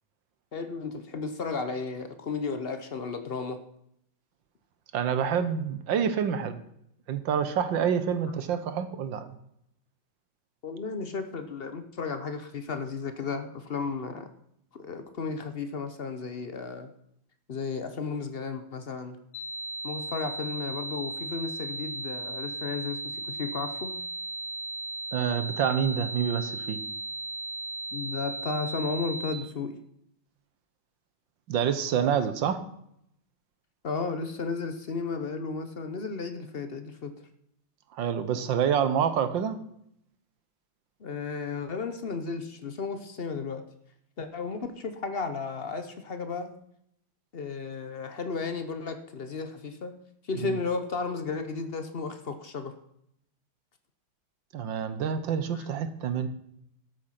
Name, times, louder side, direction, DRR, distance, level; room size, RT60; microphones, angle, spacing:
voice 1, 0.5-3.6 10.6-14.3 14.7-16.9 17.5-19.2 19.8-23.9 27.9-29.8 33.8-37.2 41.0-43.6 44.2-46.6 47.3-49.9 50.2-52.7 55.5-55.7, left 4 dB, 60° left, 8 dB, 0.6 m, -34 dB
voice 2, 4.9-6.6 7.1-9.4 25.1-26.8 31.5-32.6 37.9-39.6 50.4-50.6 54.5-56.3, right 8 dB, 70° right, 11 dB, 1.6 m, -27 dB
sound 1, 19.3-29.3, right 2 dB, 85° left, 2.8 m, -36 dB
13.0 x 7.8 x 5.8 m, 0.75 s
omnidirectional pair, 2.3 m